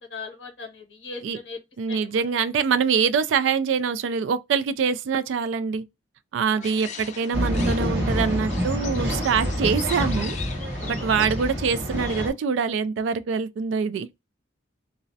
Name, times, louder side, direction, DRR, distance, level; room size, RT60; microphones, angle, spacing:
voice 1, 0.0-1.6 1.9-2.2 6.5-6.7, left 4 dB, 70° left, 0.7 m, -39 dB
voice 2, 1.8-5.8 6.3-10.4 10.9-14.1, right 6 dB, 90° right, 0.3 m, -24 dB
sound 1, 6.6-12.3, left 6 dB, 40° left, 0.4 m, -39 dB
Male speech man speaking / Chatter / Rattle, 7.3-12.3, equal, 65° right, 1.0 m, -27 dB
2.4 x 2.0 x 2.5 m
head